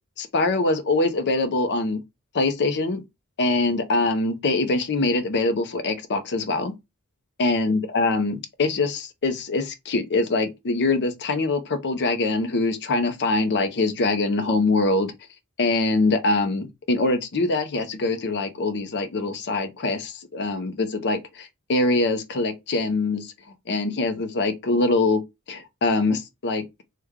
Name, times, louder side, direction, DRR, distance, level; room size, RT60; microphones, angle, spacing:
voice 1, 0.2-2.0 2.3-3.0 3.4-6.7 7.4-15.1 15.6-23.3 23.7-25.2 25.5-26.6, left 3 dB, 50° left, 0.6 m, -23 dB
3.2 x 2.2 x 3.5 m
head